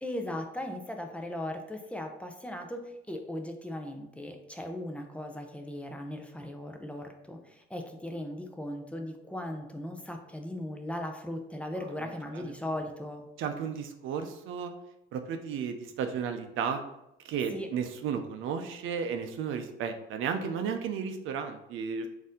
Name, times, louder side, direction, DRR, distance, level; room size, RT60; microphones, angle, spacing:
voice 1, 0.0-13.3 17.5-17.7, left 1 dB, 5° left, 3 dB, 0.5 m, -38 dB
voice 2, 13.4-14.7 15.1-16.8 17.2-22.1, right 6 dB, 85° right, 7 dB, 0.5 m, -33 dB
4.0 x 2.6 x 3.7 m, 0.88 s
cardioid pair, 90°, 20 cm